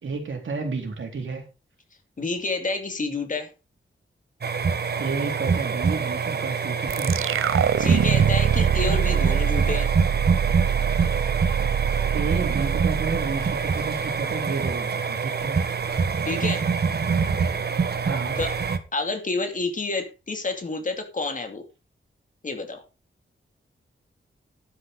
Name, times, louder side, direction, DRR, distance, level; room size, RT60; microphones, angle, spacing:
voice 1, 0.0-1.4 5.0-7.2 12.1-15.6 18.0-18.4, right 4 dB, 70° right, 4.0 m, -31 dB
voice 2, 2.2-3.5 7.8-9.9 16.3-16.7 18.4-18.5 18.9-21.6 22.4-22.8, left 3 dB, 40° left, 2.5 m, -29 dB
sound 1, 4.4-18.8, right 5 dB, 50° right, 1.3 m, -25 dB
sound 2, 6.9-14.2, right 9 dB, 85° right, 0.7 m, -24 dB
12.0 x 10.0 x 3.9 m
wide cardioid pair, 170°, 21 cm